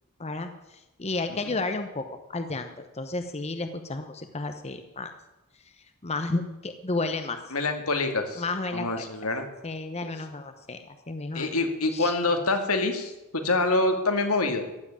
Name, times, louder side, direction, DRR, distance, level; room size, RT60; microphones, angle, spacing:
voice 1, 0.2-2.0 2.3-5.1 6.0-7.4 8.4-9.1 9.6-11.5 11.9-12.2, left 3 dB, 30° left, 8 dB, 0.9 m, -32 dB
voice 2, 7.5-8.4 8.7-9.4 11.3-14.6, left 2 dB, 80° left, 5 dB, 2.3 m, -26 dB
15.0 x 7.8 x 9.9 m, 1.0 s
head